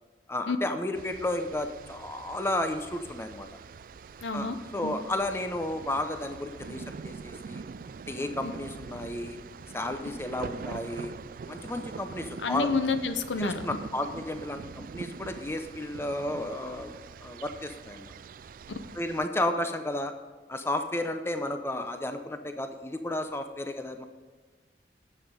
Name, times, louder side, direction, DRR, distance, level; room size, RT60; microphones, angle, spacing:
voice 1, 0.3-3.5 4.3-7.6 8.1-9.4 9.7-11.1 11.5-12.7 13.4-18.1 18.9-20.1 20.5-24.0, left 1 dB, 15° left, 7 dB, 0.6 m, -32 dB
sound 1, 0.9-19.3, right 5 dB, 50° right, 0.3 m, -44 dB
voice 2, 4.2-4.6 4.8-4.9 8.4-8.5 12.4-13.6, left 4 dB, 85° left, 10 dB, 0.8 m, -29 dB
9.8 x 7.5 x 5.3 m, 1.5 s
head